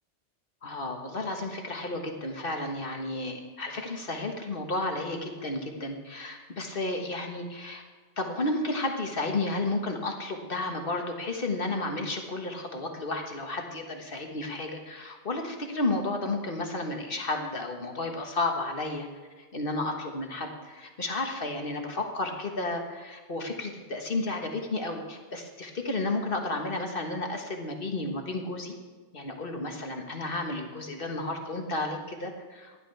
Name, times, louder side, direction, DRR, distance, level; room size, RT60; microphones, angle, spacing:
voice 1, 0.6-7.8 8.2-19.1 19.4-28.7 29.1-32.9, left 2 dB, 50° left, 3 dB, 1.6 m, -32 dB
16.0 x 11.0 x 3.4 m, 1.4 s
omnidirectional pair, 1.2 m